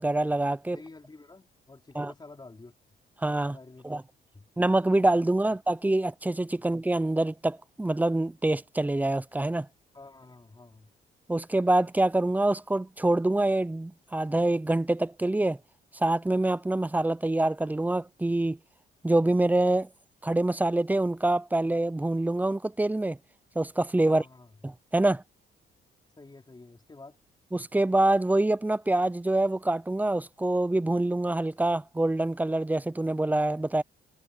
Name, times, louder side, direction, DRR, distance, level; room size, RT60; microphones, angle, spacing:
voice 1, 0.0-0.8 2.0-2.1 3.2-3.6 3.8-4.0 4.6-9.7 11.3-15.6 15.9-18.6 19.0-19.9 20.2-23.2 23.6-24.2 24.9-25.2 27.5-33.8, right 2 dB, 10° right, 0.6 m, -25 dB
voice 2, 0.7-2.7 3.5-4.0 4.3-4.5 5.5-5.6 9.9-10.9 24.1-24.5 26.2-27.2, left 3 dB, 20° left, 5.2 m, -49 dB
cardioid pair, 90°, 20 cm